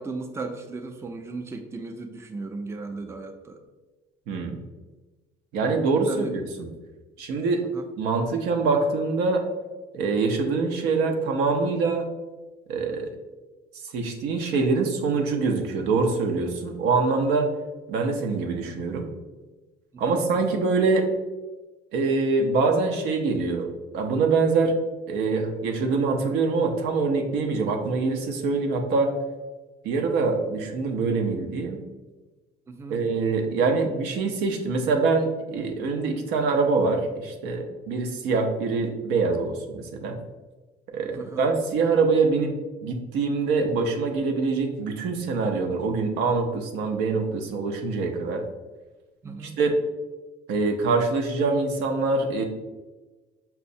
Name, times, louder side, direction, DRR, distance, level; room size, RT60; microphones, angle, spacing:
voice 1, 0.0-3.6 6.1-6.3 7.6-7.8 19.9-20.3 32.7-33.0 41.1-41.5 49.2-49.6, right 3 dB, 15° right, 5 dB, 0.3 m, -36 dB
voice 2, 5.5-6.7 7.2-7.6 8.0-9.4 9.9-12.1 12.7-13.1 13.9-17.5 17.9-19.1 20.0-21.1 21.9-23.7 23.9-24.7 25.1-29.1 29.8-31.8 32.9-40.2 40.9-42.5 42.8-48.4 49.6-49.7 50.5-52.4, right 4 dB, 90° right, 3 dB, 0.5 m, -24 dB
5.5 x 2.0 x 2.6 m, 1.2 s
cardioid pair, 110°, 17 cm